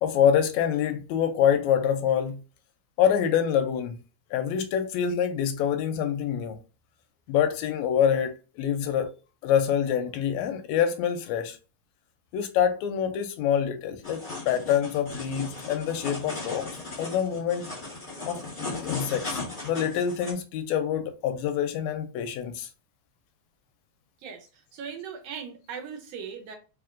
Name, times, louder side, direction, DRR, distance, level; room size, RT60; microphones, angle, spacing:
voice 1, 0.0-2.4 3.0-4.0 4.3-6.6 7.3-9.1 9.4-11.6 12.3-16.7 17.0-17.7 18.3-18.4 18.8-22.7, left 8 dB, 80° left, 1.7 m, -26 dB
sound 1, 14.0-20.3, left 3 dB, 25° left, 1.0 m, -37 dB
voice 2, 24.2-26.6, right 6 dB, 75° right, 1.5 m, -39 dB
4.2 x 3.1 x 2.4 m
omnidirectional pair, 3.4 m